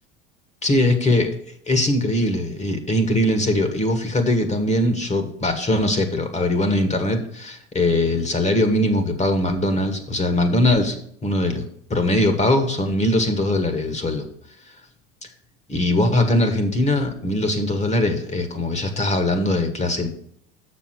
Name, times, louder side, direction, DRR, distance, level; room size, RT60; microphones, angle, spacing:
voice 1, 0.6-1.3 1.7-11.0 11.2-11.6 11.9-14.2 14.7-14.8 15.7-20.1, left 1 dB, 20° left, 8 dB, 1.5 m, -21 dB
6.7 x 6.4 x 6.0 m, 0.66 s
hypercardioid pair, 80°, 32 cm